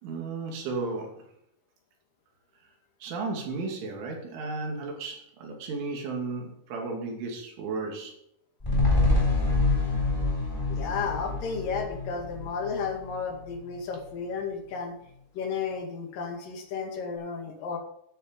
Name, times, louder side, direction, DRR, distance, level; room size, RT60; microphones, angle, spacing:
voice 1, 0.0-1.2 3.0-8.1, right 3 dB, 90° right, 1 dB, 5.1 m, -34 dB
sound 1, 8.6-13.1 13.5-13.6, left 2 dB, 5° left, 3.5 m, -26 dB
voice 2, 10.7-14.9 15.3-17.8, left 5 dB, 55° left, 3 dB, 3.2 m, -33 dB
13.0 x 8.1 x 5.3 m, 0.74 s
omnidirectional pair, 5.3 m